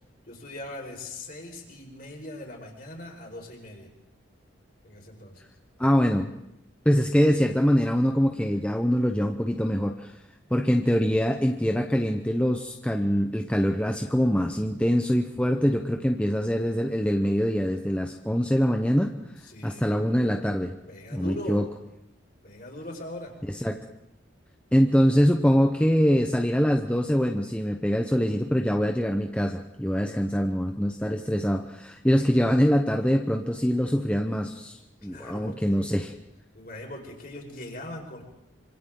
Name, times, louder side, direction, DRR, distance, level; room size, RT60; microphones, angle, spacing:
voice 1, 0.3-3.9 4.8-5.4 19.4-19.9 20.9-21.6 22.4-23.3 29.9-30.2 35.0-35.8 36.5-38.2, left 1 dB, 45° left, 0 dB, 4.9 m, -40 dB
voice 2, 5.8-6.3 6.8-10.1 10.5-19.1 19.6-20.8 21.1-21.6 23.5-23.8 24.7-34.8 35.0-36.1, equal, 5° left, 3 dB, 0.8 m, -24 dB
26.0 x 26.0 x 3.8 m, 0.84 s
head